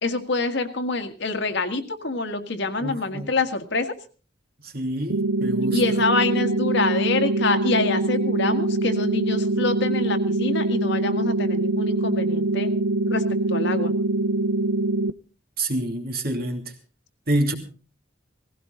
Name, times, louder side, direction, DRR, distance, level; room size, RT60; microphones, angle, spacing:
voice 1, 0.0-3.9 5.7-12.7 13.1-13.2 13.5-13.9, left 3 dB, 65° left, 7 dB, 1.8 m, -26 dB
voice 2, 2.8-3.3 4.6-5.8 15.6-16.7 17.3-17.5, right 1 dB, 55° right, 5 dB, 2.8 m, -27 dB
sound 1, 5.1-15.1, right 2 dB, 90° right, 0.6 m, -23 dB
18.0 x 16.0 x 3.8 m, 0.36 s
head